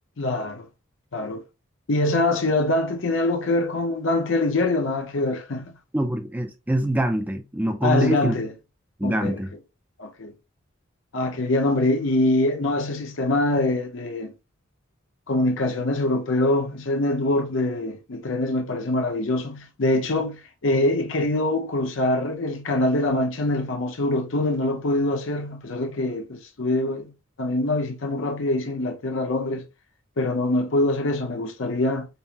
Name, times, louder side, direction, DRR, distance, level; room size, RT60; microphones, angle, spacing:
voice 1, 0.2-0.6 1.1-1.4 1.9-5.7 7.8-8.5 9.0-9.4 10.0-10.3 11.1-14.3 15.3-27.1 27.4-29.6 30.2-32.1, left 2 dB, 65° left, 0.7 m, -24 dB
voice 2, 5.9-8.4 9.0-9.5, right 1 dB, 10° right, 0.4 m, -24 dB
5.3 x 2.1 x 2.8 m
head